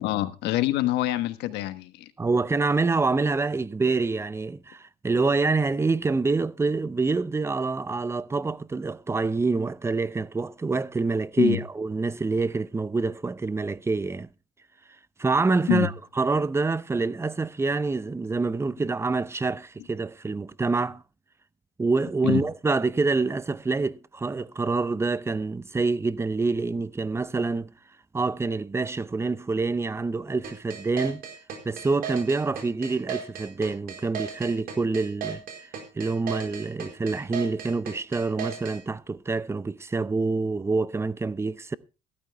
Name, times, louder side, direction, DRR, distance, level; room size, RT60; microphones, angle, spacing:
voice 1, 0.0-2.0 11.4-11.6 15.7-15.9 22.2-22.4, left 15 dB, 90° left, 1.3 m, -25 dB
voice 2, 2.2-14.3 15.2-21.0 21.8-27.7 28.1-31.2 31.6-41.8, right 3 dB, 15° right, 0.6 m, -26 dB
sound 1, 30.4-38.8, right 7 dB, 60° right, 4.5 m, -35 dB
15.0 x 13.0 x 3.5 m
cardioid pair, 110°, 17 cm